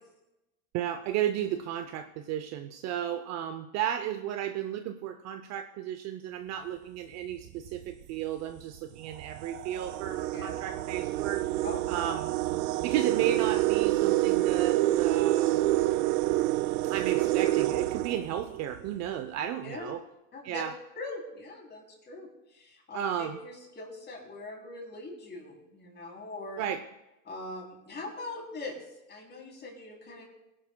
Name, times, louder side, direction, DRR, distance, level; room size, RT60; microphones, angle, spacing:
voice 1, 0.7-11.4 11.9-12.3 12.8-15.7 16.8-20.0 20.4-20.7 22.9-23.4 26.6-26.8, right 10 dB, 40° right, 8 dB, 0.6 m, -33 dB
sound 1, 7.5-7.7 8.6-8.7 9.1-18.9, right 16 dB, 90° right, 0.5 m, -27 dB
voice 2, 20.3-20.6 20.9-26.6 27.2-30.2, left 2 dB, 20° left, 0 dB, 3.1 m, -42 dB
20.0 x 11.0 x 2.2 m, 0.95 s
supercardioid pair, 120°, 45 cm